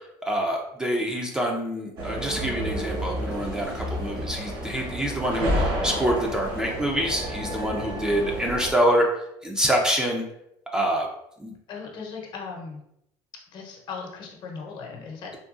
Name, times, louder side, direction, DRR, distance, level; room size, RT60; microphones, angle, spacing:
voice 1, 0.0-10.3 10.7-11.1 11.4-11.5, equal, 5° right, 0 dB, 0.5 m, -26 dB
sound 1, 2.0-8.7, equal, 45° right, 1.0 m, -30 dB
voice 2, 11.7-12.8 13.5-15.4, left 5 dB, 50° left, 0 dB, 0.8 m, -38 dB
3.6 x 2.3 x 2.5 m, 0.76 s
supercardioid pair, 110°, 10 cm